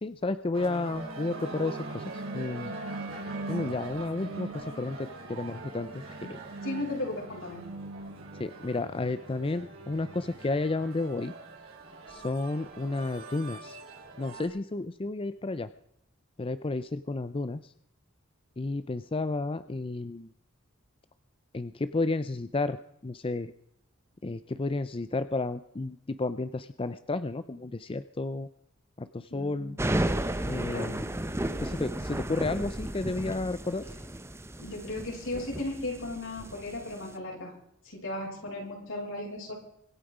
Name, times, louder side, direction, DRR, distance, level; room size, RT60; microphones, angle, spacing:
voice 1, 0.0-2.7 3.5-6.4 8.4-11.3 12.1-13.8 14.2-15.7 16.4-17.7 18.6-20.3 21.5-23.5 24.2-28.5 29.0-29.8 30.5-31.1 31.6-33.8, left 2 dB, 25° left, 13 dB, 0.5 m, -32 dB
sound 1, 0.5-14.5, right 3 dB, 75° right, 4.7 m, -41 dB
voice 2, 6.6-7.6 29.3-29.8 30.7-31.0 34.6-37.5 37.8-39.5, left 2 dB, 75° left, -2 dB, 7.4 m, -36 dB
sound 2, 29.8-37.1, right 1 dB, 15° right, 0.9 m, -33 dB
25.0 x 9.2 x 5.0 m, 0.75 s
head